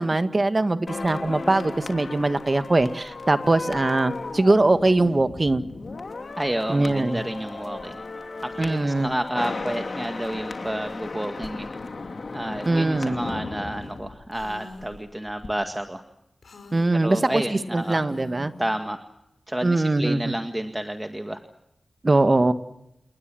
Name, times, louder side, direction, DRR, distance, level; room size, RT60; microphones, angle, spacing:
voice 1, 0.0-5.6 6.7-7.2 8.6-9.1 12.6-13.2 16.7-17.4 17.7-18.5 19.6-20.3 22.0-22.5, right 2 dB, 35° right, 10 dB, 1.7 m, -21 dB
sound 1, 0.9-15.0 15.3-15.5, left 3 dB, 55° left, 3.1 m, -35 dB
voice 2, 6.4-8.0 8.4-11.7 12.3-16.0 17.0-18.0 18.6-19.0 19.5-21.4, right 1 dB, 15° right, 6 dB, 1.7 m, -30 dB
Female speech woman speaking, 14.3-14.9 16.4-18.7, left 3 dB, 75° left, 5.1 m, -42 dB
29.5 x 20.0 x 7.7 m, 0.84 s
wide cardioid pair, 85°, 0 cm